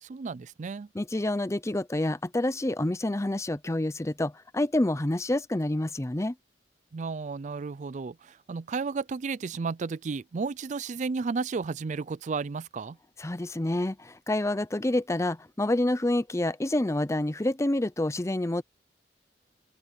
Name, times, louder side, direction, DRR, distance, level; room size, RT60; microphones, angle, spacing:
voice 1, 0.0-0.9 6.9-13.0, right 4 dB, 45° right, 0.4 m, -33 dB
voice 2, 0.9-6.3 13.2-18.6, left 1 dB, 15° left, 0.6 m, -28 dB
open air
head